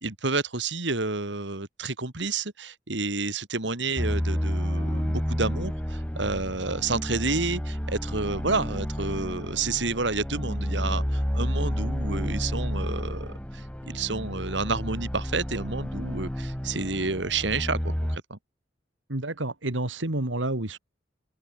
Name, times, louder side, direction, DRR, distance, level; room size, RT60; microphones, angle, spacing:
voice 1, 0.0-18.4, right 3 dB, 65° right, 2.5 m, -30 dB
sound 1, 4.0-18.2, equal, 5° left, 1.1 m, -30 dB
voice 2, 19.1-20.8, right 2 dB, 80° right, 2.5 m, -29 dB
head